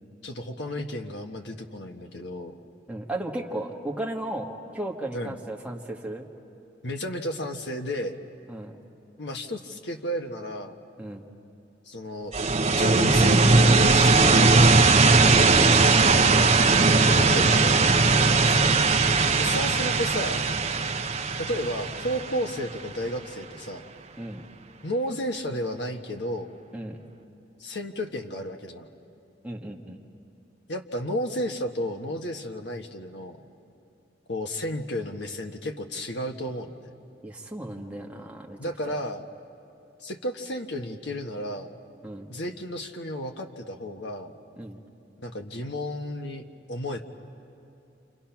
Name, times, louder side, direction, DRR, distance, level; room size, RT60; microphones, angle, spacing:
voice 1, 0.2-2.6 5.1-5.4 6.8-8.2 9.2-10.8 11.9-12.3 12.8-14.9 16.1-16.5 16.8-17.9 19.4-20.5 21.4-23.8 24.8-26.5 27.6-28.9 30.7-33.4 34.3-36.9 38.6-39.3 40.0-41.7 42.3-44.3 45.2-47.0, equal, 65° left, 4 dB, 1.4 m, -33 dB
voice 2, 2.9-6.3 8.5-8.7 11.0-11.2 15.1-16.0 18.4-19.3 24.2-24.5 26.7-27.0 29.4-30.0 37.2-38.6 42.0-42.3 44.6-44.8, right 1 dB, 5° right, -1 dB, 1.6 m, -36 dB
sound 1, 12.3-23.0, right 3 dB, 35° right, 0.9 m, -19 dB
28.5 x 28.0 x 5.9 m, 2.7 s
head